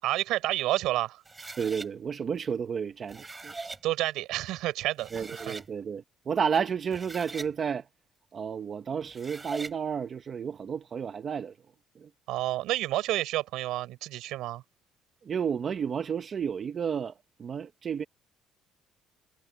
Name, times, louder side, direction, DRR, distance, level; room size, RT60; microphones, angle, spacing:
voice 1, 0.0-1.2 3.8-5.5 12.3-14.6, right 16 dB, 70° right, 7.0 m, -30 dB
sound 1, 1.2-1.9 2.9-3.8 4.6-4.7 5.0-5.7 6.7-7.5 9.0-9.8, right 3 dB, 15° right, 4.7 m, -41 dB
voice 2, 1.6-3.5 5.1-7.9 8.3-11.6 11.9-12.1 15.2-17.1 17.4-18.0, right 7 dB, 30° right, 0.9 m, -31 dB
cardioid pair, 160°, 0 cm